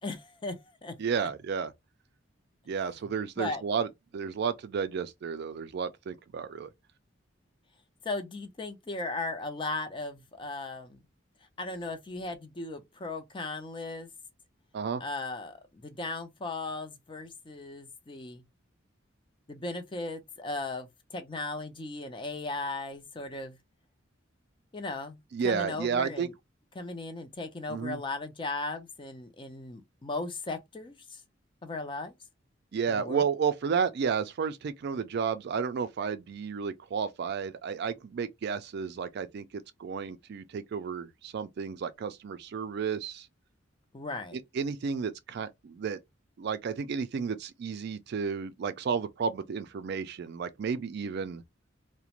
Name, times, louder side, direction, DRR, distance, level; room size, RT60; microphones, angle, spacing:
voice 1, 0.0-1.0 3.4-3.6 8.0-11.0 11.6-14.1 15.0-18.4 19.5-23.6 24.7-25.2 25.4-26.3 26.8-31.2 31.6-32.1 32.9-33.2 43.9-44.4, left 2 dB, 25° left, 0.5 m, -37 dB
voice 2, 1.0-1.7 2.7-6.7 14.7-15.0 25.3-26.3 27.7-28.0 32.7-43.3 44.3-46.0 46.4-51.4, right 6 dB, 60° right, 0.3 m, -32 dB
2.4 x 2.1 x 2.9 m
head